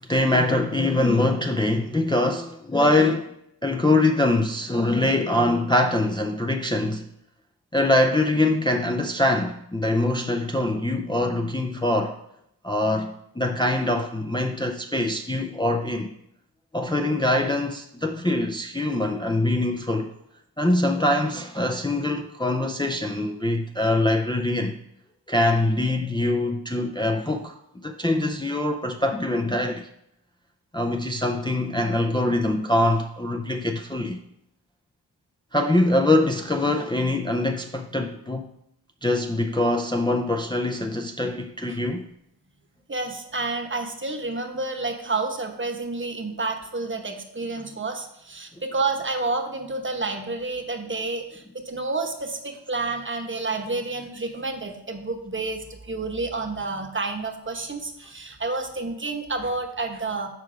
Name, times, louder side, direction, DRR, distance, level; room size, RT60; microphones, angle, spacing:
voice 1, 0.1-3.3 3.6-7.0 7.7-12.2 12.6-16.1 16.7-20.1 20.6-24.8 25.3-29.9 30.7-34.2 35.5-38.5 39.0-42.0, left 1 dB, 10° left, 0.5 m, -23 dB
voice 2, 42.9-60.3, right 3 dB, 30° right, 1.0 m, -29 dB
6.8 x 4.6 x 4.9 m
cardioid pair, 45°, 42 cm